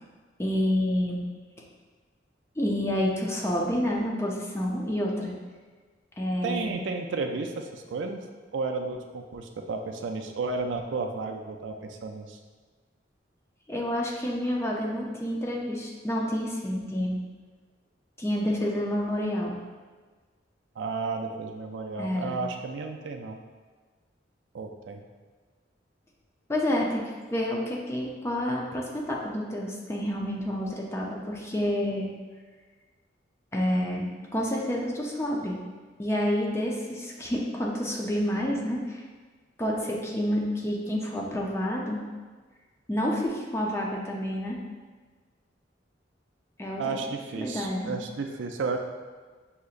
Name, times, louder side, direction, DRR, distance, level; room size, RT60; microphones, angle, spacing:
voice 1, 0.4-1.2 2.6-5.3 6.2-6.8 13.7-17.2 18.2-19.6 22.0-22.4 26.5-27.0 27.3-32.1 33.5-34.1 34.3-35.6 36.0-39.0 39.6-42.0 42.9-44.6 46.6-46.8 47.3-47.9, equal, 15° left, -2 dB, 0.5 m, -29 dB
voice 2, 6.4-8.2 8.5-12.4 20.8-23.4 24.5-25.0 46.8-48.8, right 4 dB, 75° right, 4 dB, 0.4 m, -32 dB
6.3 x 2.8 x 2.4 m, 1.4 s
head